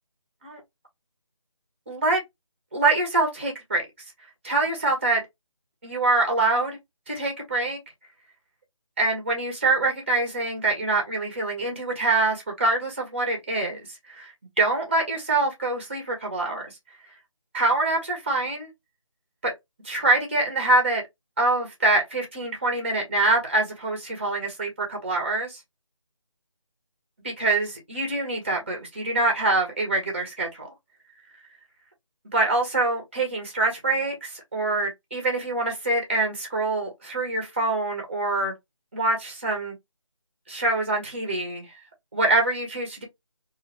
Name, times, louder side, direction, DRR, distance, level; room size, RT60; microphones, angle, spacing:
voice 1, 1.9-2.2 2.7-3.9 4.4-5.2 5.8-6.8 7.1-7.8 9.0-13.8 14.1-14.3 14.6-16.6 17.5-18.7 19.4-19.5 19.8-21.0 21.4-25.6 27.2-30.7 32.3-38.5 38.9-39.7 40.5-41.7 42.1-43.0, right 2 dB, 20° right, 0.8 m, -25 dB
2.4 x 2.3 x 3.0 m
figure-of-eight pair, 160°, 17 cm